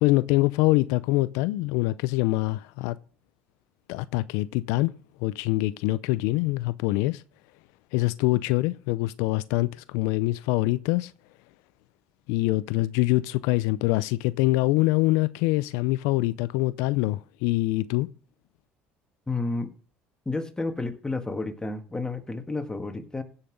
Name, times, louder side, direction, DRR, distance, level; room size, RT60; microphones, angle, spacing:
voice 1, 0.0-3.0 3.9-4.9 5.2-7.2 7.9-11.1 12.3-18.1, left 19 dB, 80° left, 0.4 m, -24 dB
voice 2, 19.3-19.7 20.3-23.2, left 3 dB, 15° left, 1.7 m, -31 dB
16.0 x 5.7 x 6.5 m
supercardioid pair, 75°, 5 cm